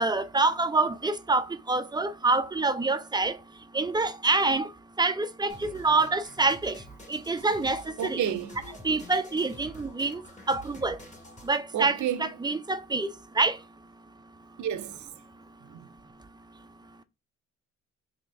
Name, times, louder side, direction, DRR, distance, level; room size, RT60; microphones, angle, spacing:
voice 1, 0.0-3.4 3.7-4.7 5.0-6.8 7.1-8.2 8.8-10.2 10.5-11.0 11.4-13.6, right 3 dB, 15° right, 0.4 m, -26 dB
sound 1, 5.5-11.5, equal, 25° left, 1.0 m, -48 dB
voice 2, 8.0-8.6 11.7-12.3 14.6-15.1 15.6-15.8, right 9 dB, 70° right, 0.6 m, -31 dB
3.9 x 2.8 x 3.3 m
cardioid pair, 90°, 30 cm